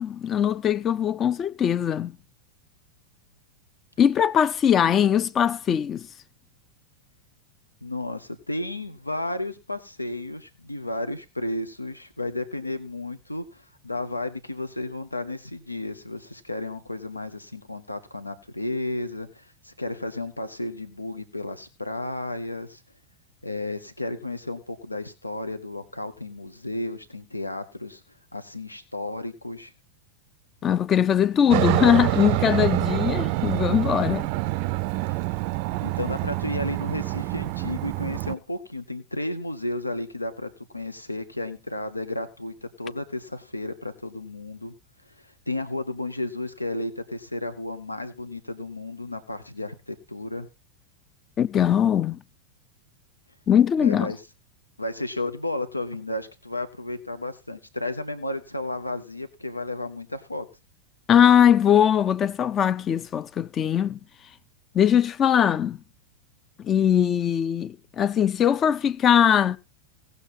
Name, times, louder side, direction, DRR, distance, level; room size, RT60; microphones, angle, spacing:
voice 1, 0.0-2.2 4.0-6.1 30.6-34.3 51.4-52.2 53.5-54.1 61.1-64.0 64.7-65.8 66.6-69.6, left 9 dB, 25° left, 0.6 m, -21 dB
voice 2, 7.8-22.8 23.4-28.0 28.3-29.7 35.8-44.7 45.0-50.5 53.8-54.2 54.8-60.5, left 2 dB, 85° left, 1.0 m, -33 dB
Aircraft, 31.5-38.3, right 19 dB, 45° right, 0.5 m, -26 dB
17.5 x 6.8 x 4.1 m
figure-of-eight pair, 90°, 0 cm